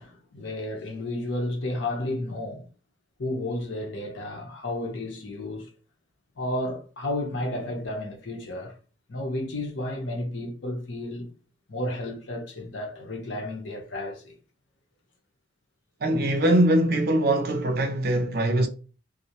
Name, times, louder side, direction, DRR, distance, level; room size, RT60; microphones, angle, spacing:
voice 1, 0.0-2.6 3.2-5.7 6.4-8.7 9.1-11.3 11.7-14.3, left 1 dB, 75° left, 0.7 m, -32 dB
voice 2, 16.0-18.7, right 1 dB, 50° right, 0.4 m, -22 dB
2.4 x 2.0 x 2.7 m
head